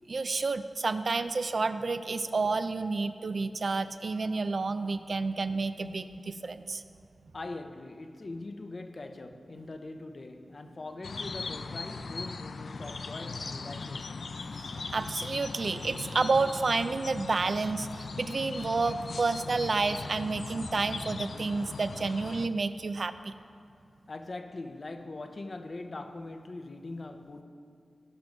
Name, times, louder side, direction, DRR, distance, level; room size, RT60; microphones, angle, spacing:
voice 1, 0.1-6.8 14.5-23.3, right 3 dB, 55° right, 0.4 m, -30 dB
voice 2, 7.3-14.4 24.1-27.4, left 2 dB, 45° left, 0.8 m, -42 dB
birdsong ambient, 11.0-22.5, left 4 dB, 70° left, 0.4 m, -39 dB
17.5 x 6.0 x 5.3 m
wide cardioid pair, 110°, 0 cm